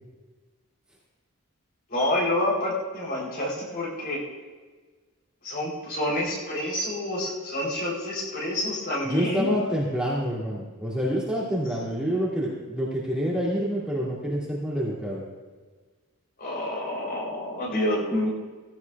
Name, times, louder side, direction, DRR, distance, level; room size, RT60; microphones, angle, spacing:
voice 1, 1.9-4.2 5.4-9.6 16.4-18.3, left 1 dB, 45° left, -3 dB, 3.7 m, -28 dB
voice 2, 9.0-15.2, equal, 5° right, -7 dB, 2.6 m, -27 dB
17.5 x 16.0 x 2.4 m, 1.4 s
head